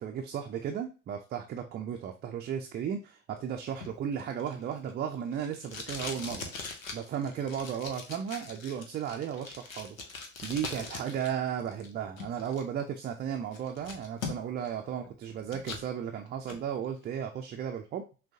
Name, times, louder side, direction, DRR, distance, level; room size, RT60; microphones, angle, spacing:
voice 1, 0.0-6.5 6.9-18.0, right 8 dB, 25° right, 3 dB, 0.5 m, -35 dB
Packing tape duct tape, 3.8-11.3 11.6-12.6 13.1-13.2 13.5-14.7 15.0-15.9 16.3-16.6, left 4 dB, 80° left, 0.9 m, -42 dB
6.0 x 2.2 x 2.7 m, 0.33 s
figure-of-eight pair, 70°, 40 cm